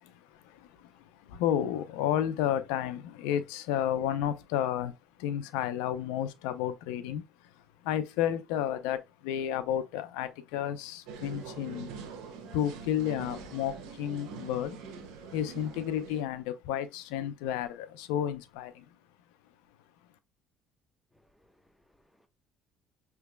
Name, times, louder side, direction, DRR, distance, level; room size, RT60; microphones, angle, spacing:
voice 1, 0.0-11.9 12.5-14.8 15.3-18.9, left 10 dB, 90° left, 0.5 m, -32 dB
sound 1, 11.1-16.2, right 5 dB, 80° right, 1.0 m, -44 dB
voice 2, 21.1-22.3, left 1 dB, 5° left, 1.0 m, -68 dB
5.6 x 3.4 x 2.2 m
supercardioid pair, 90°, 0 cm